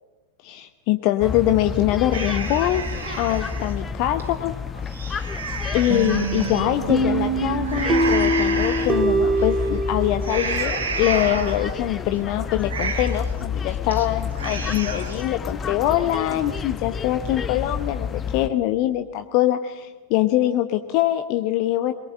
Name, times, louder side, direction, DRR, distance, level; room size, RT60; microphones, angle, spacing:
voice 1, 0.4-2.9 3.2-4.5 5.7-21.9, left 13 dB, 45° left, 9 dB, 0.9 m, -23 dB
sound 1, 1.2-18.5, left 6 dB, 20° left, 1.2 m, -30 dB
sound 2, 2.1-3.7 4.2-4.3 4.8-6.6 7.6-8.9 9.4-9.7 10.2-11.8 12.1-12.2 12.6-13.3 13.7-14.1 14.3-15.2, right 5 dB, 70° right, 3.8 m, -30 dB
sound 3, 5.9-10.6, right 2 dB, 25° right, 2.5 m, -23 dB
23.0 x 21.5 x 7.5 m, 1.3 s
figure-of-eight pair, 90°, 0 cm